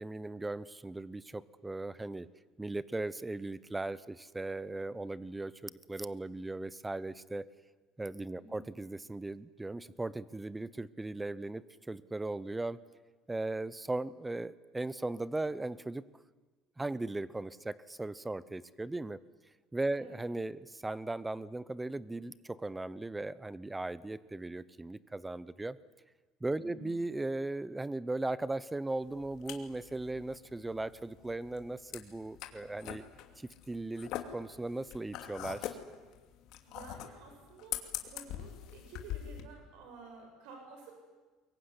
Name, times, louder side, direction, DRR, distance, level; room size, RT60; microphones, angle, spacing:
voice 1, 0.0-2.3 2.6-7.5 8.0-12.8 13.3-16.0 16.8-19.2 19.7-25.8 26.4-33.0 33.4-35.8, right 2 dB, 10° right, 18 dB, 0.8 m, -38 dB
voice 2, 8.4-8.7 19.9-20.2 26.6-26.9 36.7-40.9, right 4 dB, 75° right, 3 dB, 7.7 m, -52 dB
sound 1, 29.0-39.4, left 12 dB, 60° left, 2.7 m, -43 dB
24.0 x 22.5 x 9.8 m, 1.3 s
cardioid pair, 140°, 0 cm